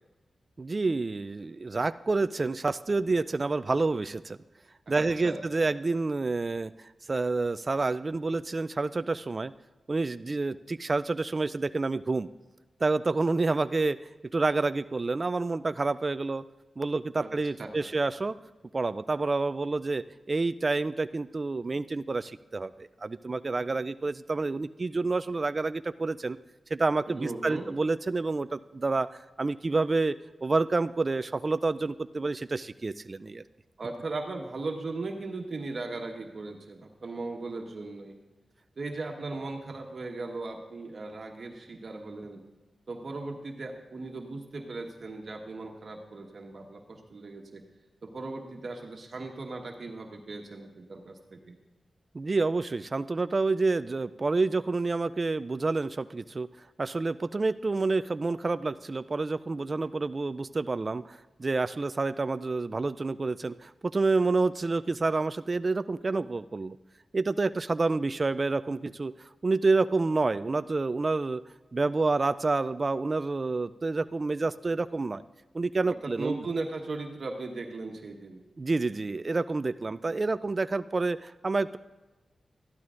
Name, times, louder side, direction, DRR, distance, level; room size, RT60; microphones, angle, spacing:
voice 1, 0.6-4.4 4.9-9.5 9.9-12.3 12.8-14.0 14.3-16.4 16.8-18.4 18.7-26.4 26.7-33.4 52.1-56.5 56.8-66.8 67.1-69.1 69.4-71.4 71.7-75.2 75.5-76.4 78.6-81.8, right 3 dB, 45° right, 14 dB, 0.3 m, -28 dB
voice 2, 4.9-5.7 17.2-17.3 17.6-17.9 27.1-27.7 33.8-38.2 38.8-42.4 42.9-47.7 48.0-51.5 75.9-78.4, right 3 dB, 60° right, 2 dB, 1.3 m, -38 dB
14.0 x 11.5 x 2.5 m, 1.1 s
cardioid pair, 55°, 0 cm